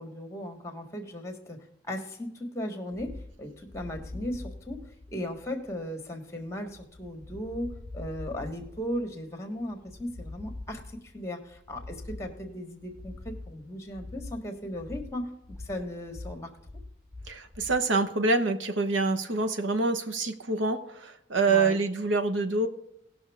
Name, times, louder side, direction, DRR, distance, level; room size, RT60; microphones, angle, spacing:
voice 1, 0.0-16.5 21.5-21.8, left 1 dB, 15° left, 5 dB, 1.5 m, -37 dB
sound 1, 2.9-17.8, left 2 dB, 60° right, 2.6 m, -44 dB
voice 2, 17.3-22.7, right 3 dB, 85° right, 8 dB, 1.1 m, -26 dB
18.5 x 6.2 x 3.6 m, 0.79 s
head